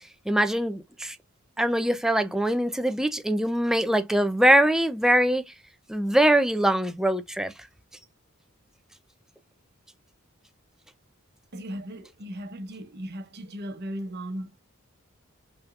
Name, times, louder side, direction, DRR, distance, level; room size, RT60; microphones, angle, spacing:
voice 1, 0.3-1.2 1.6-5.4 5.9-7.5, right 1 dB, 5° right, 0.6 m, -22 dB
voice 2, 11.5-14.6, equal, 55° right, 1.1 m, -37 dB
5.9 x 3.5 x 2.5 m
head